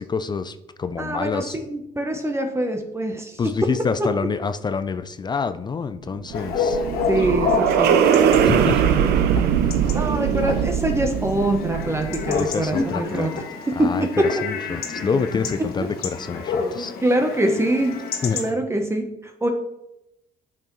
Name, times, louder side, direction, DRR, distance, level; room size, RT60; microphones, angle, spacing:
voice 1, 0.0-1.5 3.4-6.8 8.4-8.8 10.2-10.3 12.3-13.3 13.8-14.1 14.4-16.9 18.2-18.4, left 5 dB, 25° left, 11 dB, 0.4 m, -27 dB
voice 2, 1.0-3.4 4.0-4.1 7.1-8.0 8.8-9.1 9.9-13.3 17.0-17.9 18.3-19.5, right 1 dB, 15° right, 4 dB, 0.9 m, -24 dB
sound 1, 6.1-12.6, right 8 dB, 75° right, 0.6 m, -21 dB
Chatter / Bark / Livestock farm animals working animals, 6.3-18.5, left 5 dB, 65° left, 1.5 m, -29 dB
8.8 x 5.7 x 3.1 m, 0.85 s
cardioid pair, 110°, 17 cm